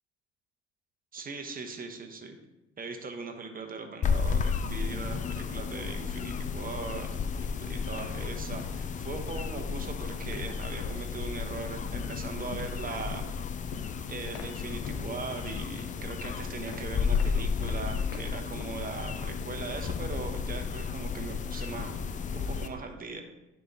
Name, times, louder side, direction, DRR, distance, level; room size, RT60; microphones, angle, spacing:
voice 1, 1.1-2.4 2.8-7.2 7.6-13.3 13.6-13.8 14.1-21.9 22.3-23.2, right 4 dB, 25° right, 4 dB, 1.2 m, -40 dB
sound 1, 4.0-22.7, left 6 dB, 25° left, 0.5 m, -33 dB
sound 2, 7.9-19.2, left 4 dB, 60° left, 1.1 m, -47 dB
9.7 x 3.5 x 4.2 m, 0.95 s
figure-of-eight pair, 60°, 35 cm